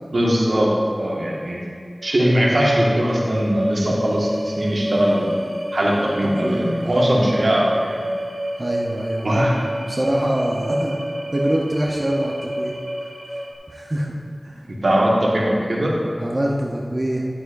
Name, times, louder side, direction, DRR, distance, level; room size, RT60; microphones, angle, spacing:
voice 1, 0.1-0.7 1.0-1.6 2.0-5.2 5.7-8.0 9.2-9.5 14.7-15.9, equal, 85° right, -4 dB, 1.7 m, -20 dB
sound 1, 2.0-13.5, right 1 dB, 65° right, 1.0 m, -29 dB
voice 2, 6.4-7.1 8.6-11.0 11.3-12.7 13.7-14.2 14.4-14.6 16.2-17.2, right 1 dB, 40° right, -2 dB, 0.9 m, -25 dB
10.5 x 9.4 x 2.6 m, 2.2 s
wide cardioid pair, 50°, 0 cm